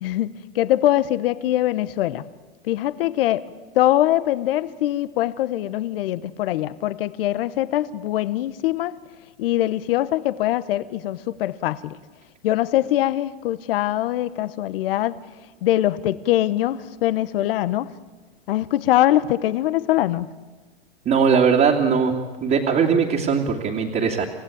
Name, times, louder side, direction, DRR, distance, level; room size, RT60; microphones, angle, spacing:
voice 1, 0.0-2.2 2.6-3.4 3.7-9.0 9.4-12.0 12.4-15.2 15.6-17.9 18.5-20.3, left 14 dB, 70° left, 15 dB, 1.1 m, -22 dB
voice 2, 21.0-24.3, right 6 dB, 30° right, -1 dB, 2.7 m, -20 dB
28.0 x 15.5 x 8.7 m, 1.3 s
hypercardioid pair, 120°, 30 cm